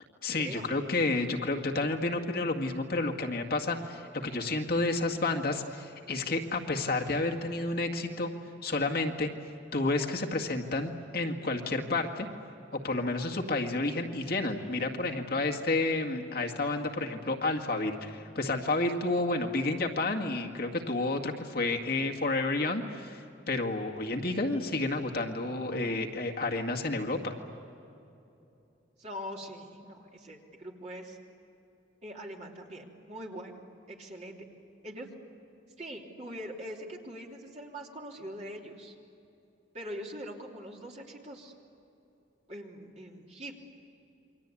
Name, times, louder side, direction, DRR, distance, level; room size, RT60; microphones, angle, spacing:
voice 1, 0.2-8.3 8.6-9.3 9.7-12.3 12.7-27.3, left 2 dB, 50° left, 1 dB, 2.0 m, -30 dB
voice 2, 29.0-31.2 32.0-33.6 33.9-34.4 34.8-35.1 35.8-38.9 39.7-41.5 42.5-43.6, equal, 35° right, 0 dB, 3.2 m, -42 dB
28.5 x 24.0 x 8.5 m, 2.8 s
head